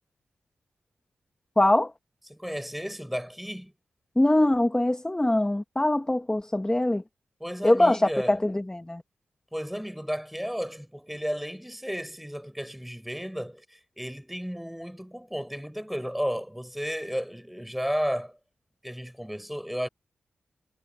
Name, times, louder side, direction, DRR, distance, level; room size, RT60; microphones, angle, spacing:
voice 1, 1.6-1.9 4.2-7.0 7.6-9.0, left 1 dB, 15° left, 1.1 m, -23 dB
voice 2, 2.3-3.7 7.4-8.4 9.5-18.4 18.8-19.9, equal, 5° right, 5.7 m, -33 dB
supercardioid pair, 40°, 4 cm